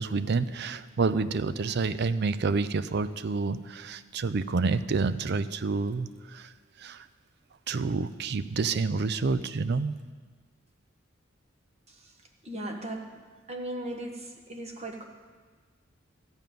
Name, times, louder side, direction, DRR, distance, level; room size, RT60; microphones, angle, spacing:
voice 1, 0.0-7.1 7.7-10.0, right 4 dB, 55° right, 14 dB, 0.5 m, -29 dB
voice 2, 12.4-13.1 13.5-15.0, right 1 dB, 35° right, 2 dB, 1.3 m, -37 dB
14.0 x 5.3 x 9.3 m, 1.4 s
head